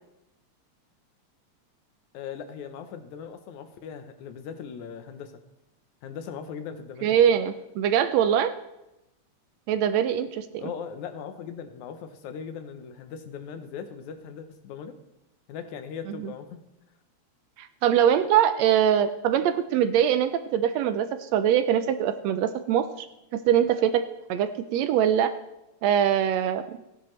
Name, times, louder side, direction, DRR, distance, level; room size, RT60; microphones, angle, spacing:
voice 1, 2.1-5.3 6.0-7.1 10.6-15.0 15.5-16.6, left 7 dB, 80° left, 9 dB, 2.3 m, -39 dB
voice 2, 7.0-8.5 9.7-10.6 16.1-16.3 17.6-23.1 23.3-24.0 24.3-25.3 25.8-26.8, right 9 dB, 75° right, 10 dB, 1.7 m, -23 dB
16.0 x 10.5 x 3.2 m, 0.93 s
omnidirectional pair, 3.3 m